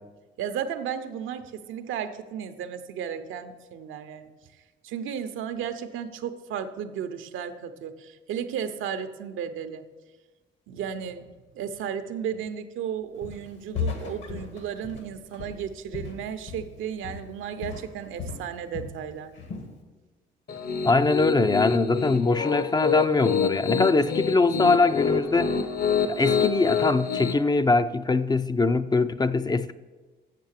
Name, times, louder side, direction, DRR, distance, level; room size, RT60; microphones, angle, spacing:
voice 1, 0.4-4.3 4.8-9.8 10.7-11.3 11.5-19.3, right 8 dB, 85° right, 0.7 m, -34 dB
Walk footsteps, 13.2-13.5 13.7-16.8 17.0-17.4 17.6-19.0 19.3-19.7, left 5 dB, 70° left, 1.8 m, -35 dB
Piano, 20.5-27.3, left 6 dB, 50° left, 0.9 m, -27 dB
voice 2, 20.8-25.6 26.1-29.7, left 3 dB, 20° left, 0.4 m, -22 dB
7.5 x 7.2 x 7.3 m
cardioid pair, 90°, 20 cm